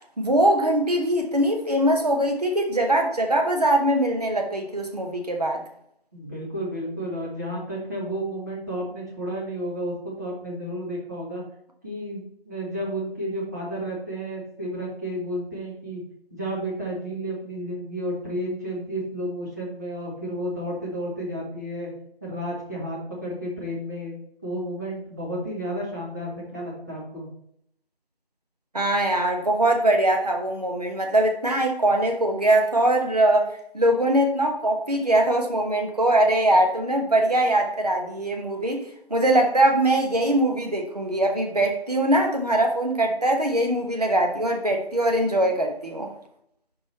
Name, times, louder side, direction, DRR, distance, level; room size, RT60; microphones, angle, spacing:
voice 1, 0.2-5.6 28.7-38.8 39.1-46.1, right 1 dB, 40° right, 2 dB, 1.1 m, -22 dB
voice 2, 6.1-11.4 11.8-16.0 16.3-21.9 22.2-24.2 24.4-27.3, equal, 15° right, -6 dB, 1.3 m, -32 dB
5.7 x 5.0 x 4.1 m, 0.70 s
figure-of-eight pair, 175°, 31 cm